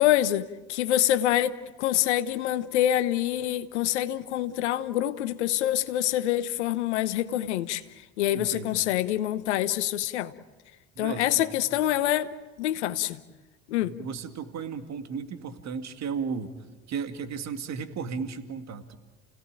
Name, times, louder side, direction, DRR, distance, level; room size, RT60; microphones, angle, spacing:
voice 1, 0.0-7.8 8.2-10.3 11.0-13.2 13.7-13.9, left 13 dB, 85° left, 1.0 m, -26 dB
voice 2, 8.3-8.8 11.0-11.4 13.8-16.5 16.9-19.0, right 6 dB, 50° right, 2.3 m, -35 dB
29.5 x 17.5 x 9.0 m
hypercardioid pair, 65°, 34 cm